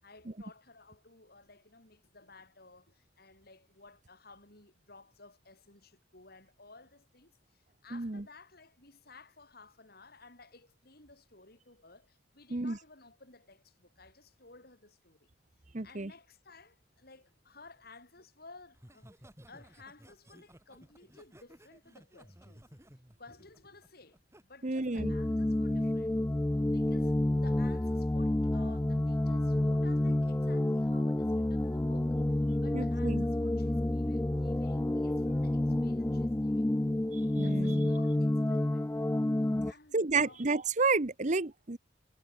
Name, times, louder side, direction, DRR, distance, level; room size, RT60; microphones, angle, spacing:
voice 1, 0.0-15.3 15.8-19.1 19.5-22.6 23.2-26.2 26.6-36.7 37.4-39.3 39.7-40.4, left 3 dB, 55° left, 6.2 m, -56 dB
voice 2, 7.9-8.2 12.5-12.8 15.7-16.1 24.6-25.1 32.7-33.2 37.1-37.9 39.9-41.8, right 3 dB, 40° right, 1.0 m, -31 dB
Laughter, 18.7-24.4 24.9-25.2, equal, 15° right, 4.3 m, -57 dB
sound 1, 25.0-39.7, left 1 dB, 10° left, 0.3 m, -29 dB
head